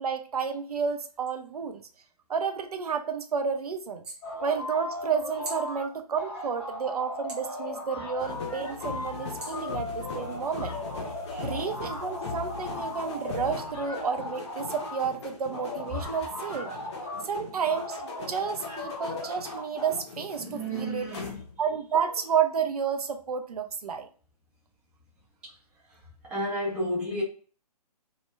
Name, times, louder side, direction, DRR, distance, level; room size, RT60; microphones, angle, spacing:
voice 1, 0.0-1.8 2.3-4.0 4.4-10.8 11.4-16.7 17.2-21.2 21.6-24.1, right 6 dB, 70° right, 6 dB, 0.5 m, -31 dB
sound 1, 4.2-5.9 6.1-15.1 15.5-17.3 17.7-20.0, left 2 dB, 20° left, 0.9 m, -37 dB
sound 2, 8.2-21.8 22.1-22.4, left 4 dB, 45° left, 0.6 m, -41 dB
voice 2, 20.4-21.4 25.4-25.5 26.3-27.2, equal, 5° right, -5 dB, 0.4 m, -32 dB
2.2 x 2.1 x 3.2 m, 0.40 s
figure-of-eight pair, 135°, 21 cm